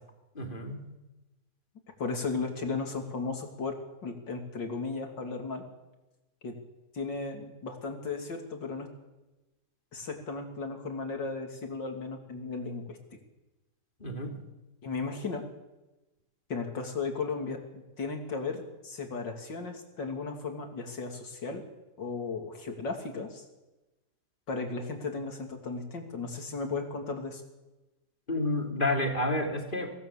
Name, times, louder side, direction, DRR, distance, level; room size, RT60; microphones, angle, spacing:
voice 1, 0.3-0.9 14.0-14.4 28.3-29.9, left 1 dB, 30° left, 2 dB, 3.2 m, -30 dB
voice 2, 2.0-3.7 4.0-5.6 6.4-6.5 6.9-8.9 9.9-13.2 14.8-15.4 16.5-21.6 22.0-23.4 24.5-27.4, left 4 dB, 85° left, 3 dB, 3.8 m, -35 dB
25.0 x 18.5 x 7.4 m, 1.0 s
omnidirectional pair, 1.9 m